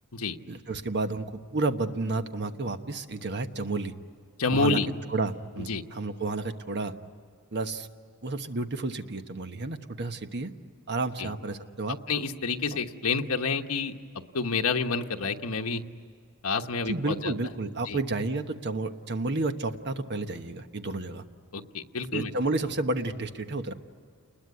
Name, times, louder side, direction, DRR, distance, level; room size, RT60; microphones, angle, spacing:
voice 1, 0.5-3.9 4.5-4.8 5.1-6.9 7.5-7.9 8.2-10.5 10.9-12.0 16.9-21.2 22.1-23.7, right 3 dB, 50° right, 8 dB, 1.2 m, -31 dB
voice 2, 4.4-4.9 5.7-5.8 11.2-11.3 12.1-15.8 16.4-17.3 17.9-18.0 21.5-22.3, left 4 dB, 75° left, 4 dB, 1.2 m, -29 dB
28.5 x 21.0 x 9.6 m, 2.2 s
head